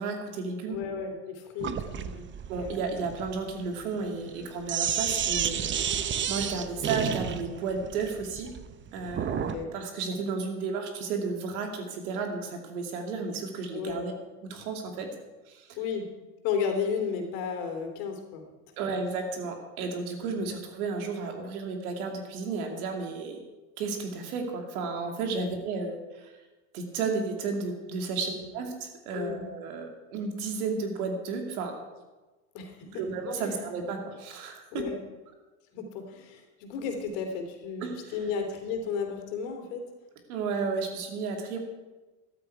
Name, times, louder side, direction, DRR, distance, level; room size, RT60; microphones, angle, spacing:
voice 1, 0.0-0.8 2.5-5.9 6.3-8.5 8.9-14.1 14.5-15.1 15.5-15.8 18.8-23.4 23.8-26.3 26.7-31.8 32.9-34.9 37.8-38.3 40.3-41.6, right 4 dB, 75° right, 3 dB, 2.7 m, -33 dB
voice 2, 0.7-2.2 2.6-2.8 9.3-9.7 10.1-10.2 13.7-14.0 15.8-16.1 16.4-18.5 25.4-25.5 28.2-28.5 29.1-29.5 32.5-33.0 33.4-33.6 34.7-35.0 35.7-39.8, left 6 dB, 65° left, 4 dB, 3.1 m, -33 dB
Sink (filling or washing), 1.6-9.6, right 8 dB, 25° right, 0.8 m, -31 dB
13.5 x 12.5 x 4.7 m, 1.2 s
hypercardioid pair, 95°, 44 cm